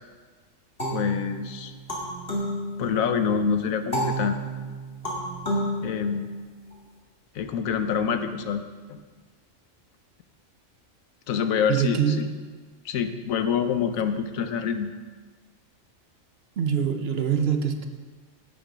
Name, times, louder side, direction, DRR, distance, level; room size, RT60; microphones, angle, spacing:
sound 1, 0.8-3.3 3.9-6.7, right 1 dB, 40° left, 2.4 m, -31 dB
voice 1, 0.9-1.7 2.8-4.4 5.8-6.3 7.3-8.6 8.9-9.0 11.3-12.3 12.8-14.9, left 7 dB, 90° left, 9 dB, 1.2 m, -26 dB
voice 2, 11.7-12.3 16.6-17.9, right 7 dB, 55° right, 7 dB, 0.9 m, -24 dB
10.0 x 8.7 x 5.1 m, 1.4 s
omnidirectional pair, 1.4 m